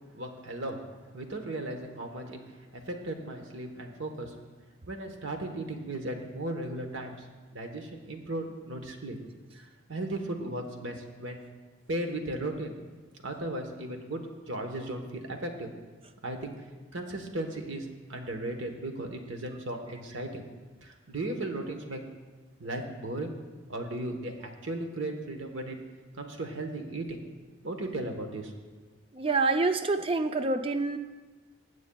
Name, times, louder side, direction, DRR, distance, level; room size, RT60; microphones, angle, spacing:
voice 1, 0.1-0.8 1.1-2.4 2.7-4.3 4.9-9.2 9.5-11.4 11.9-12.7 13.2-15.7 16.2-16.5 16.9-20.4 20.8-22.0 22.6-23.3 23.7-25.8 26.2-27.2 27.6-28.5, right 1 dB, 75° right, 4 dB, 1.1 m, -36 dB
voice 2, 29.1-31.0, right 3 dB, 30° right, 9 dB, 0.4 m, -27 dB
20.0 x 8.2 x 2.3 m, 1.3 s
head